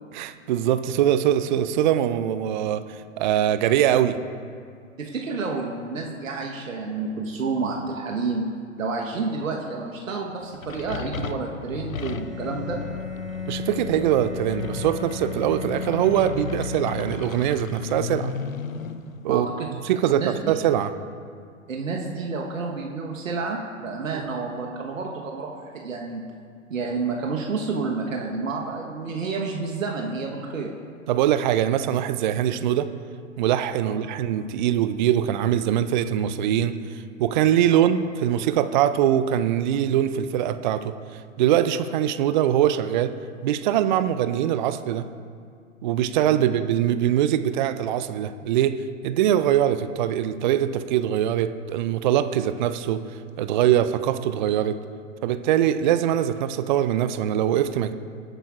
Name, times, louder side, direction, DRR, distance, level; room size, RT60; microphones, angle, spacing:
voice 1, 0.1-4.2 13.5-18.4 19.2-19.5 19.8-20.9 24.1-24.2 31.1-32.9 33.4-43.1 43.4-45.1 45.8-48.8 49.0-53.0 53.4-54.8 55.2-57.9, right 11 dB, 40° right, 12 dB, 0.4 m, -22 dB
voice 2, 5.0-8.4 8.8-12.8 19.3-19.7 20.1-20.3 21.7-26.2 26.7-30.7 33.8-33.9, right 4 dB, 75° right, 0 dB, 1.2 m, -29 dB
sound 1, 10.4-20.8, left 6 dB, 90° left, 0.6 m, -35 dB
Bowed string instrument, 12.0-17.8, left 4 dB, ahead, 2.5 m, -36 dB
19.0 x 9.0 x 2.4 m, 2.2 s
figure-of-eight pair, 110°, 40 cm